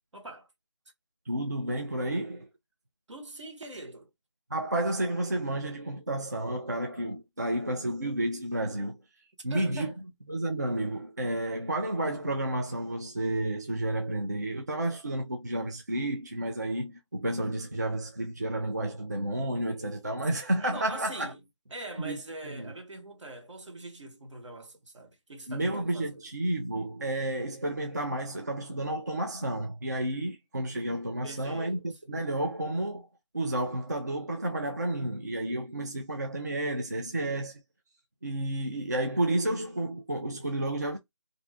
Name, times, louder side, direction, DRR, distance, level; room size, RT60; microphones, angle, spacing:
voice 1, 0.1-0.5 3.1-4.1 9.5-10.0 20.6-21.4 21.7-26.2 31.2-31.8, right 2 dB, 75° right, 1.2 m, -43 dB
voice 2, 1.3-2.5 4.5-9.0 9.4-9.9 10.3-21.3 22.0-22.2 22.4-22.7 25.5-33.1 33.3-37.6 38.2-41.0, right 1 dB, 35° right, 0.3 m, -31 dB
2.5 x 2.3 x 3.3 m
figure-of-eight pair, 180°, 16 cm